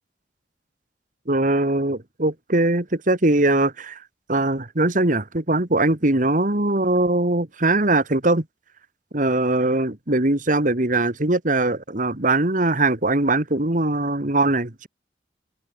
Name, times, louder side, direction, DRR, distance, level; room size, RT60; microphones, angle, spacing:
voice 1, 1.3-4.0 4.3-8.4 9.1-14.9, right 2 dB, 50° right, 2.1 m, -21 dB
head